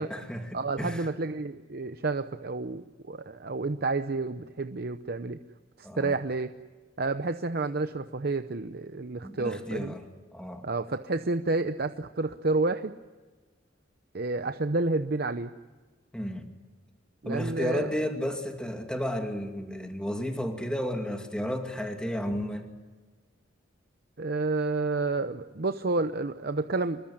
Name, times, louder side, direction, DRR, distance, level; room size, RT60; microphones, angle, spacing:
voice 1, 0.0-1.1 5.8-6.1 9.2-10.1 10.3-10.7 16.1-16.5 17.2-22.7, equal, 5° left, 3 dB, 2.4 m, -33 dB
voice 2, 0.5-5.4 5.8-6.5 7.0-10.0 10.6-13.0 14.1-15.5 17.2-18.0 24.2-27.0, right 3 dB, 55° right, 9 dB, 0.8 m, -30 dB
25.5 x 22.0 x 10.0 m, 1.3 s
head